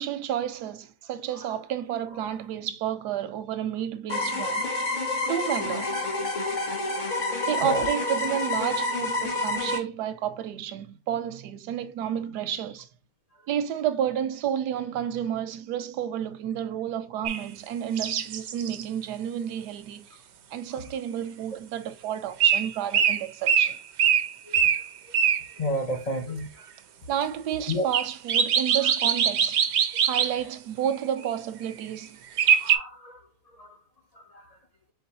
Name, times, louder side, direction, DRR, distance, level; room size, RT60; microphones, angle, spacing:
voice 1, 0.0-4.7 5.3-5.9 7.5-12.9 13.5-20.1 20.5-23.8 27.1-29.6 30.0-32.2, right 10 dB, 80° right, 1.1 m, -31 dB
sound 1, 4.1-9.8, left 2 dB, 40° left, 0.7 m, -28 dB
sound 2, 17.2-17.4 18.0-18.8 22.4-22.7 22.9-25.5 27.9-30.4 32.4-32.8, right 8 dB, 65° right, 0.7 m, -22 dB
voice 2, 25.6-26.7 27.7-27.9 28.8-28.9 30.1-30.3 32.5-33.2 33.5-33.8 34.1-34.6, left 1 dB, 60° left, 0.4 m, -32 dB
4.7 x 3.7 x 2.8 m
omnidirectional pair, 1.8 m